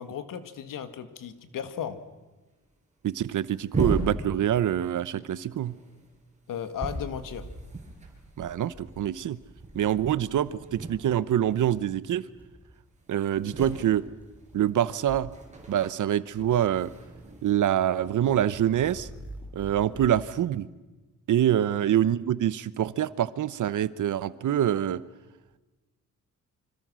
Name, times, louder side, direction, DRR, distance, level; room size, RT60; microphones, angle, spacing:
voice 1, 0.0-2.0 6.5-7.5, left 8 dB, 80° left, 10 dB, 2.0 m, -35 dB
sound 1, 1.3-1.5 1.7-1.8 2.5-2.7 3.0-4.9 5.2-11.5 11.7-12.1 12.4-12.5 12.7-19.0 19.9-20.4, right 2 dB, 20° right, 6.4 m, -38 dB
voice 2, 3.0-5.7 8.4-9.4 9.7-12.2 13.1-14.0 14.5-15.3 15.7-16.9 17.4-19.1 19.5-20.7 21.3-25.0, right 11 dB, 70° right, 17 dB, 1.0 m, -25 dB
sound 2, 7.2-8.2 8.6-9.0 9.5-10.0 10.4-12.0 12.3-12.8 13.9-14.7 15.0-15.9 16.3-17.5 17.9-20.2, right 1 dB, 5° right, 2.8 m, -48 dB
27.0 x 26.0 x 6.3 m, 1.2 s
cardioid pair, 125°, 32 cm